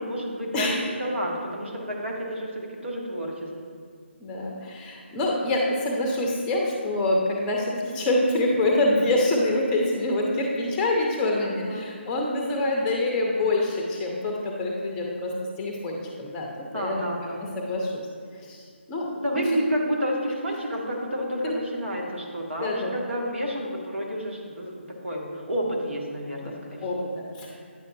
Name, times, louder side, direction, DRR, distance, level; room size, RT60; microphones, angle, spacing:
voice 1, 0.0-3.5 11.6-11.8 16.7-17.4 19.2-27.1, equal, 70° right, -1 dB, 1.4 m, -30 dB
voice 2, 0.5-0.9 4.2-15.3 15.6-16.5 16.7-17.1 17.4-18.1 18.5-19.1 19.4-19.5 21.4-21.5 22.6-22.9 26.4-26.5 26.8-27.6, left 2 dB, 15° left, -1 dB, 0.6 m, -26 dB
9.2 x 6.4 x 2.7 m, 2.3 s
figure-of-eight pair, 150°, 7 cm